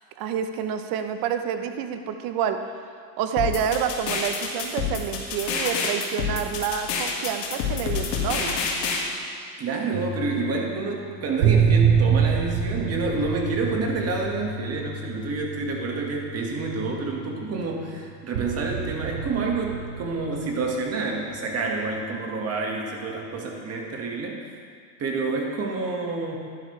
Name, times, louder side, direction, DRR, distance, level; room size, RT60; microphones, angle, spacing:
voice 1, 0.2-2.6 3.2-8.7, right 8 dB, 45° right, 8 dB, 0.9 m, -28 dB
sound 1, 3.4-9.0, left 6 dB, 85° left, 2.2 m, -27 dB
voice 2, 9.6-24.4 25.0-26.4, right 3 dB, 30° right, 0 dB, 1.7 m, -28 dB
sound 2, 9.9-17.9 18.3-21.0 21.8-22.1, right 6 dB, 75° right, 1.4 m, -27 dB
11.5 x 10.5 x 3.3 m, 2.2 s
supercardioid pair, 120°, 49 cm